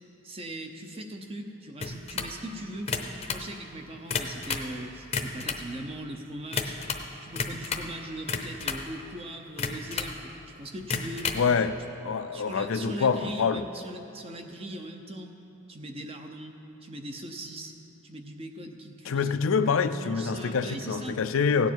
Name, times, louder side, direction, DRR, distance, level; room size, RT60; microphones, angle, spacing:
voice 1, 0.2-2.9 3.3-6.8 7.2-11.3 12.3-15.3 15.7-17.7 18.0-19.3 20.0-21.2, right 1 dB, 30° right, 4 dB, 0.8 m, -40 dB
sound 1, 1.8-2.4 2.8-3.5 3.9-4.7 5.0-5.7 6.5-7.1 7.3-7.9 8.3-8.9 9.6-10.2 10.8-11.5, left 5 dB, 30° left, 0.7 m, -32 dB
voice 2, 11.3-11.8 12.0-13.6 19.0-21.7, left 5 dB, 80° left, 10 dB, 0.5 m, -26 dB
16.5 x 9.7 x 4.6 m, 2.9 s
head